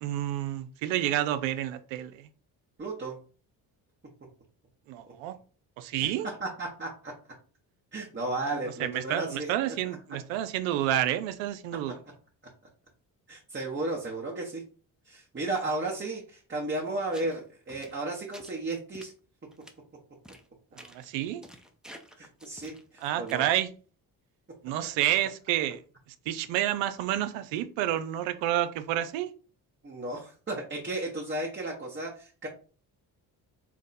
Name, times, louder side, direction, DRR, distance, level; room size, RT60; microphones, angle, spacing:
voice 1, 0.0-2.3 4.9-5.3 5.8-6.3 8.8-12.0 20.9-21.4 23.0-23.7 24.6-25.8 26.3-29.3, right 12 dB, 85° right, 0.5 m, -29 dB
voice 2, 2.8-3.2 5.0-5.1 6.0-6.1 6.4-7.1 7.9-9.8 10.1-10.2 13.3-14.6 15.0-19.1 22.2-23.4 29.8-32.5, right 2 dB, 25° right, 1.1 m, -34 dB
sound 1, 17.1-17.4 17.7-18.6 18.9-19.1 19.5-19.7 20.2-20.5 20.8-21.1 21.4-23.6, equal, ahead, 0.6 m, -50 dB
3.4 x 2.1 x 4.1 m
supercardioid pair, 55°, 44 cm